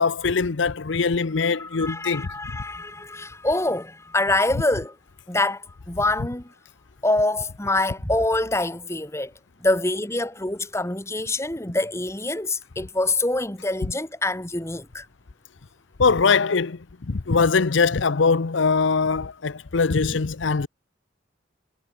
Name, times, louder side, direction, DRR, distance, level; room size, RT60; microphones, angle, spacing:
voice 1, 0.0-2.3 16.0-16.8 17.1-20.7, left 4 dB, 75° left, 0.7 m, -22 dB
voice 2, 1.6-5.0 5.3-6.5 7.0-9.3 9.6-15.1 20.1-20.2, left 2 dB, 15° left, 1.8 m, -25 dB
head